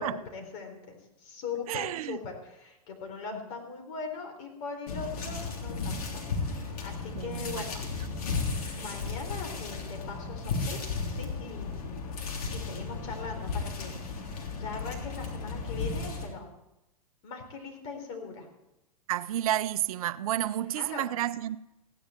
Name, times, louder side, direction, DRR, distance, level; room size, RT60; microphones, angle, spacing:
voice 1, 0.0-7.9 8.7-13.9 14.6-16.5 17.2-18.5 20.6-21.1, left 4 dB, 50° left, 3.9 m, -41 dB
voice 2, 1.7-2.2 7.1-7.7 19.1-21.6, right 13 dB, 65° right, 0.6 m, -31 dB
sound 1, 4.9-16.3, left 4 dB, 75° left, 3.3 m, -34 dB
16.0 x 10.5 x 4.4 m
hypercardioid pair, 120°, 20 cm